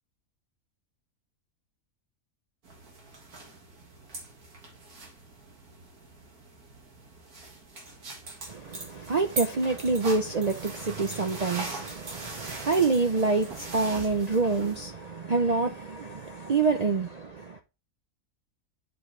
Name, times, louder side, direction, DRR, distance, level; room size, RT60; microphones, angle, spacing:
sound 1, 2.6-14.8, right 3 dB, 85° right, 2.4 m, -41 dB
voice 1, 8.5-17.6, right 4 dB, 60° right, 0.4 m, -27 dB
7.9 x 4.4 x 3.2 m
omnidirectional pair, 1.5 m